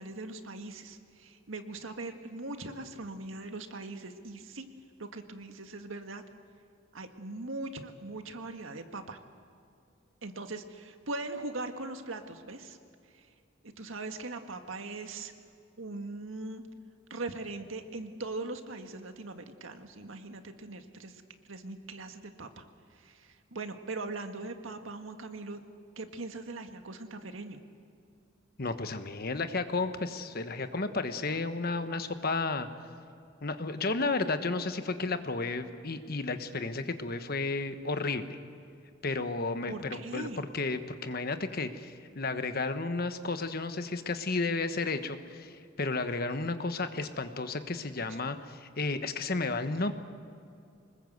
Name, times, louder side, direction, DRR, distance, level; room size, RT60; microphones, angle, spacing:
voice 1, 0.0-4.7 5.0-6.2 6.9-9.2 10.2-12.8 13.1-13.3 13.6-15.3 15.8-16.6 17.1-21.2 21.5-22.6 22.9-25.6 25.9-27.6 39.7-40.4 48.1-48.2, right 2 dB, 85° right, 6 dB, 1.7 m, -40 dB
voice 2, 28.6-32.7 33.4-38.4 39.0-49.9, left 3 dB, 50° left, 9 dB, 1.2 m, -32 dB
25.0 x 20.5 x 8.0 m, 2.4 s
head